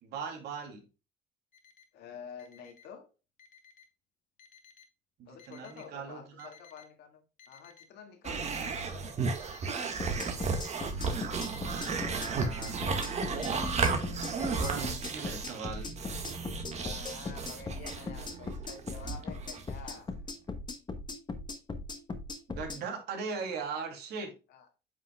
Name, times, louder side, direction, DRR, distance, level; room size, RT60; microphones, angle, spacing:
voice 1, 0.0-0.8 5.2-6.5 11.6-12.8 14.4-15.9 22.5-24.3, right 5 dB, 75° right, 2.8 m, -39 dB
Alarm, 1.5-1.8 2.4-2.8 3.4-3.8 4.4-4.9 5.4-5.9 6.4-6.9 7.4-7.9 8.4-8.9 9.4-9.9 10.4-10.9 11.4-11.8 12.4-12.8 13.4-13.8 14.4-14.9, left 7 dB, 50° left, 1.4 m, -52 dB
voice 2, 1.9-3.1 5.3-9.4 13.6-14.5 16.7-20.1 24.5-24.7, left 7 dB, 80° left, 2.1 m, -49 dB
sound 1, 8.2-20.0, right 4 dB, 40° right, 1.7 m, -34 dB
sound 2, 10.0-22.8, left 3 dB, 25° left, 1.3 m, -39 dB
9.3 x 5.7 x 2.3 m
cardioid pair, 110°, 17 cm